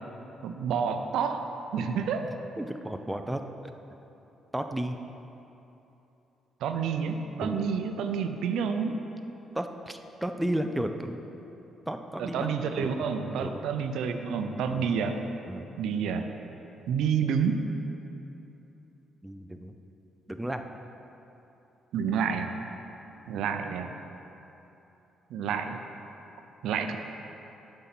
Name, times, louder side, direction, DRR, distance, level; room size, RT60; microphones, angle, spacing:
voice 1, 0.4-2.3 6.6-9.0 12.2-15.2 15.8-16.2 16.9-17.6 21.9-22.6 23.3-23.9 25.3-25.8 26.6-27.0, right 6 dB, 85° right, 6 dB, 0.5 m, -29 dB
voice 2, 2.6-3.4 4.5-5.0 7.4-7.6 9.6-11.2 11.9-12.9 13.3-13.5 14.7-14.9 15.5-15.7 19.2-19.7 20.3-20.7, right 1 dB, 10° right, 6 dB, 0.5 m, -33 dB
8.1 x 5.4 x 6.0 m, 3.0 s
cardioid pair, 90°, 0 cm